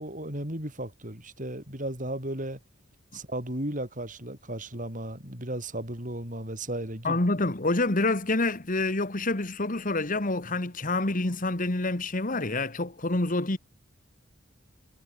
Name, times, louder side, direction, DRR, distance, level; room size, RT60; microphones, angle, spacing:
voice 1, 0.0-2.6 3.1-7.2, right 1 dB, 40° right, 7.2 m, -35 dB
voice 2, 7.0-13.6, left 2 dB, 40° left, 1.8 m, -27 dB
head